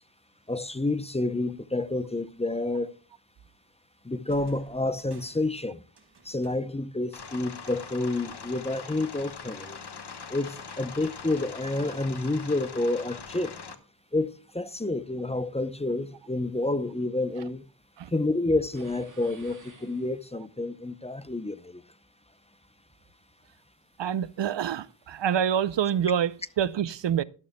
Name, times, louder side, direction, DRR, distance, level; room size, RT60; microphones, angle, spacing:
voice 1, 0.5-2.9 4.0-5.8 6.2-9.8 10.3-13.6 14.1-17.6 18.1-21.8, left 2 dB, 15° left, 0.6 m, -29 dB
sound 1, 4.3-8.2, right 4 dB, 65° right, 1.7 m, -55 dB
sound 2, 7.1-13.7, left 5 dB, 65° left, 1.2 m, -42 dB
sound 3, 18.7-20.6, right 3 dB, 45° right, 2.5 m, -53 dB
voice 2, 24.0-27.2, right 9 dB, 80° right, 0.6 m, -27 dB
12.5 x 12.0 x 2.2 m
wide cardioid pair, 60°, 43 cm